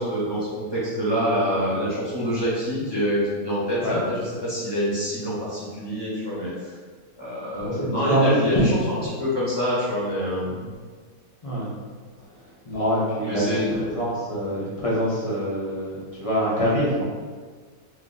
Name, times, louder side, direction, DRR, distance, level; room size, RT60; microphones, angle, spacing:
voice 1, 0.0-6.5 7.2-8.7 9.2-10.5 13.2-13.7, equal, 20° left, -9 dB, 0.8 m, -26 dB
voice 2, 7.5-9.3 10.4-10.7 11.4-11.8 12.7-17.0, equal, 45° left, -7 dB, 0.4 m, -25 dB
2.5 x 2.4 x 3.9 m, 1.5 s
omnidirectional pair, 1.5 m